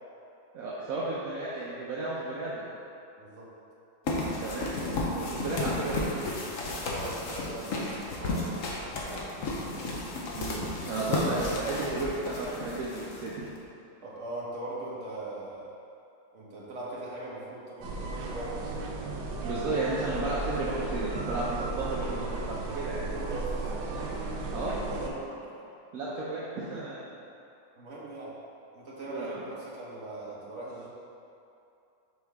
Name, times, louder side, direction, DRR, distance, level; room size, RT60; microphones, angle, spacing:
voice 1, 0.5-2.6 4.4-4.7 5.1-6.2 10.3-13.5 19.4-23.0 24.5-24.8 25.9-27.0 29.1-29.4, right 2 dB, 60° right, -7 dB, 1.0 m, -33 dB
voice 2, 3.2-3.5 6.6-9.5 11.0-11.2 14.0-15.7 16.3-18.7 23.1-23.9 24.6-25.7 27.8-28.4 28.7-30.9, right 2 dB, 40° right, -6 dB, 1.4 m, -40 dB
sound 1, 4.1-13.6, left 2 dB, 55° left, 1.0 m, -33 dB
sound 2, 17.8-25.1, right 3 dB, 85° right, 1.5 m, -35 dB
6.5 x 5.3 x 3.5 m, 2.7 s
omnidirectional pair, 2.1 m